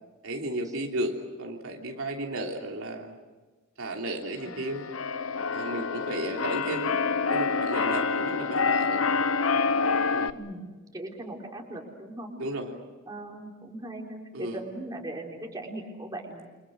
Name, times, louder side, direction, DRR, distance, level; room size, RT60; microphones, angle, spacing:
voice 1, 0.2-3.2 3.8-4.9 5.5-7.0 7.3-9.0 10.1-10.4 12.4-12.8 14.3-14.6, right 1 dB, 80° right, 1 dB, 3.3 m, -34 dB
Keyboard (musical), 4.4-10.3, left 5 dB, 70° left, 0.9 m, -27 dB
voice 2, 10.3-12.3 13.1-16.7, right 1 dB, 20° right, 0 dB, 4.5 m, -39 dB
29.5 x 26.5 x 6.5 m, 1.2 s
head